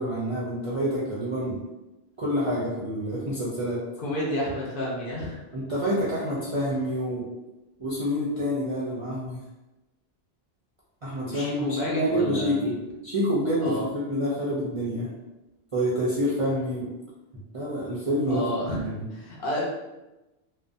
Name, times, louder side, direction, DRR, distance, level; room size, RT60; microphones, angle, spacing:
voice 1, 0.0-1.6 2.2-3.8 5.5-7.2 7.8-9.4 11.0-12.7 13.0-15.1 15.7-16.9 17.5-18.5 18.8-19.1, equal, 45° right, -8 dB, 0.4 m, -27 dB
voice 2, 4.0-5.4 11.2-12.8 13.6-13.8 18.3-19.6, left 1 dB, 60° left, -5 dB, 0.8 m, -30 dB
2.5 x 2.1 x 2.5 m, 1.0 s
omnidirectional pair, 1.1 m